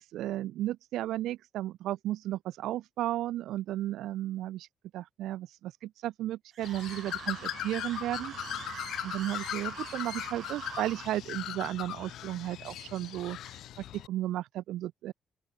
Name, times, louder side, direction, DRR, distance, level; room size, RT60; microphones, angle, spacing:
voice 1, 0.0-4.7 4.9-8.3 9.0-13.6 13.9-15.1, right 14 dB, 85° right, 1.4 m, -34 dB
sound 1, 6.5-11.2, right 8 dB, 60° right, 4.9 m, -45 dB
Bird, 6.6-14.1, left 12 dB, 80° left, 4.9 m, -39 dB
open air
cardioid pair, 90°, 0 cm